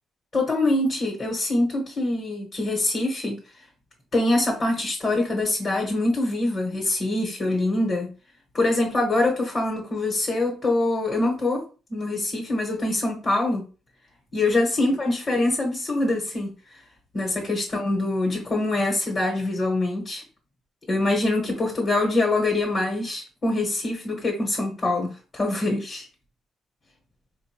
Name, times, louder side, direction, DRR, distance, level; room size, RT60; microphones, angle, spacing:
voice 1, 0.3-3.4 4.1-8.1 8.5-11.6 11.9-13.6 14.3-16.5 17.1-20.2 20.9-26.1, left 2 dB, 35° left, 1.3 m, -24 dB
4.3 x 2.5 x 2.9 m
cardioid pair, 90°, 0 cm